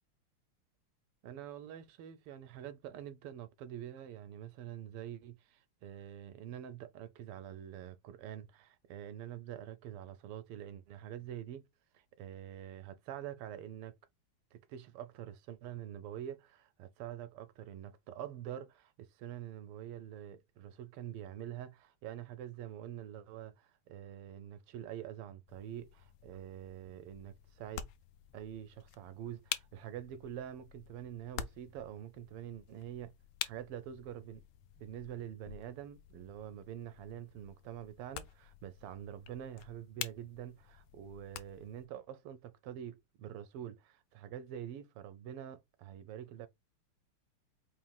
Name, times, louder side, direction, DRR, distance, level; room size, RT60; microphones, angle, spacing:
voice 1, 1.2-11.6 11.9-14.0 14.5-27.9 28.3-33.1 33.4-34.4 34.7-46.5, right 10 dB, 90° right, 1.7 m, -46 dB
sound 1, 25.5-41.9, left 11 dB, 80° left, 1.4 m, -48 dB
5.0 x 3.1 x 2.3 m
omnidirectional pair, 2.4 m